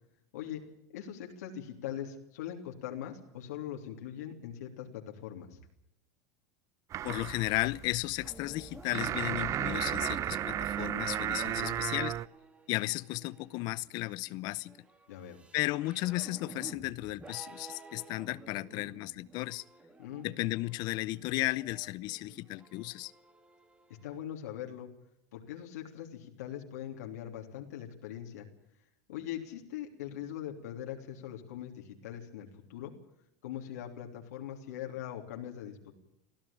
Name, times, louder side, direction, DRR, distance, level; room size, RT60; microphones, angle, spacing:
voice 1, 0.9-5.6 11.6-11.8 15.1-15.4 18.7-18.8 20.0-20.3 24.0-24.9 25.3-28.5 29.1-32.9 33.4-35.9, left 10 dB, 85° left, 3.2 m, -41 dB
sound 1, 6.9-12.3, right 11 dB, 35° right, 0.8 m, -34 dB
voice 2, 7.0-12.1 12.7-14.8 15.5-19.6 20.2-23.1, left 20 dB, 55° left, 0.7 m, -34 dB
sound 2, 8.2-24.2, right 3 dB, 15° right, 2.2 m, -53 dB
24.0 x 15.0 x 8.8 m
supercardioid pair, 120°, 9 cm